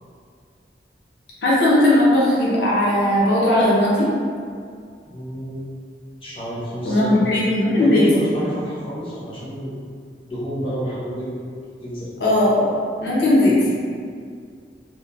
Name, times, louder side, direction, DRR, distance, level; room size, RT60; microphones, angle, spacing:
voice 1, 1.4-4.1 6.8-8.2 12.2-12.7 13.0-13.7, left 1 dB, 80° left, -7 dB, 0.6 m, -17 dB
voice 2, 5.0-5.7 6.2-7.2 7.8-9.7 10.3-11.3 11.8-12.1 13.4-13.5, equal, 30° left, -8 dB, 0.6 m, -29 dB
2.7 x 2.1 x 2.4 m, 2.2 s
head